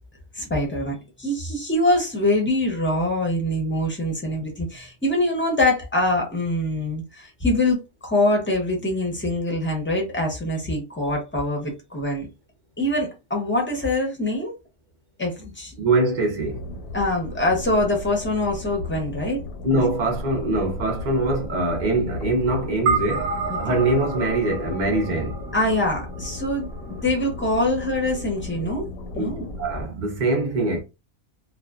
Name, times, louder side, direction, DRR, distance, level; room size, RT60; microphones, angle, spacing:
voice 1, 0.3-12.3 12.8-14.5 15.2-15.7 16.9-19.4 23.5-23.8 25.5-28.8 29.1-29.5, left 1 dB, 10° left, 0.6 m, -24 dB
voice 2, 15.8-16.6 19.6-25.4 29.2-29.3 29.6-30.8, right 2 dB, 50° right, 0.6 m, -23 dB
sound 1, 16.4-29.9, left 2 dB, 90° left, 1.2 m, -35 dB
sound 2, 22.9-27.4, right 5 dB, 90° right, 1.0 m, -30 dB
2.4 x 2.2 x 2.3 m
omnidirectional pair, 1.4 m